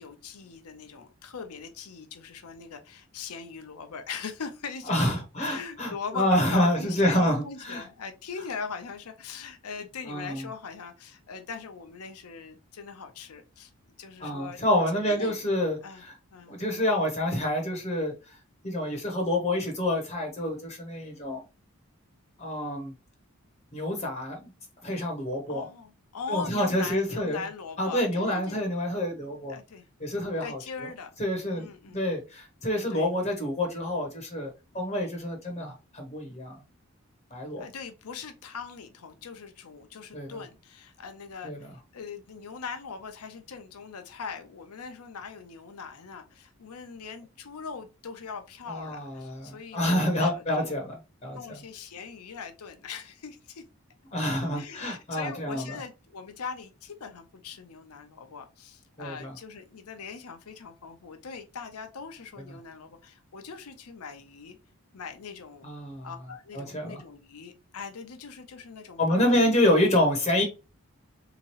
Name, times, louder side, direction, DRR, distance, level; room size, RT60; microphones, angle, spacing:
voice 1, 0.0-4.9 5.4-13.7 14.0-14.6 14.9-15.4 15.8-16.0 16.3-16.6 25.5-28.6 29.5-29.9 30.4-31.2 31.5-32.0 32.9-33.1 34.7-34.9 37.6-50.7 51.3-53.6 54.5-64.6 64.9-65.7 66.0-69.5, left 5 dB, 85° left, 0.7 m, -41 dB
voice 2, 4.9-7.8 10.1-10.4 14.2-16.1 16.5-18.4 18.6-21.4 22.4-22.9 23.7-24.4 24.8-25.6 26.3-27.4 27.8-29.6 30.0-30.6 31.2-34.5 34.7-36.6 37.3-37.6 40.1-40.4 41.4-41.6 48.7-50.9 51.2-51.4 54.1-55.6 59.0-59.3 65.6-66.1 66.5-67.0 69.0-70.4, left 1 dB, 30° left, 0.8 m, -27 dB
3.6 x 2.9 x 2.9 m
head